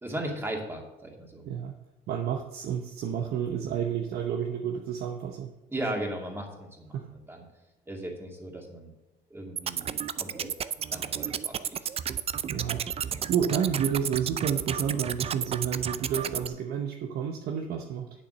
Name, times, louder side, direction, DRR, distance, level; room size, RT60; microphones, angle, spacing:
voice 1, 0.0-1.4 5.7-7.5 7.9-8.9 9.3-10.5 10.9-11.9 13.1-13.3, right 1 dB, 15° right, 0 dB, 2.3 m, -37 dB
voice 2, 2.1-5.5 6.9-7.1 12.5-18.1, right 8 dB, 70° right, 4 dB, 0.9 m, -30 dB
sound 1, 9.6-16.5, right 8 dB, 35° right, 0.5 m, -32 dB
8.8 x 7.2 x 6.4 m, 0.97 s
cardioid pair, 110°, 17 cm